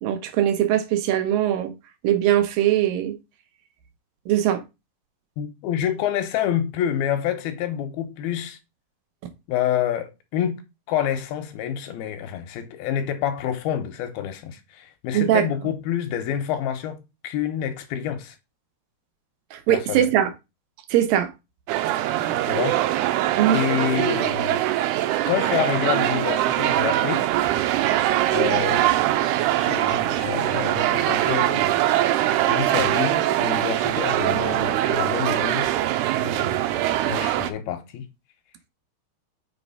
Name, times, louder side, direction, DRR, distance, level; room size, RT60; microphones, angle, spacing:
voice 1, 0.0-1.7 2.0-3.2 4.3-4.6 15.1-15.5 19.5-20.3 20.9-21.3 23.4-23.6, right 11 dB, 75° right, 2.4 m, -21 dB
voice 2, 5.4-8.6 9.5-10.6 10.9-18.4 19.7-20.1 22.4-23.1 23.5-24.6 25.3-27.2 28.3-28.9 29.5-32.2 32.5-35.8 36.2-36.7 37.0-38.1, left 10 dB, 75° left, 2.7 m, -28 dB
sound 1, 21.7-37.5, right 14 dB, 90° right, 2.7 m, -22 dB
6.2 x 4.6 x 5.4 m
omnidirectional pair, 4.6 m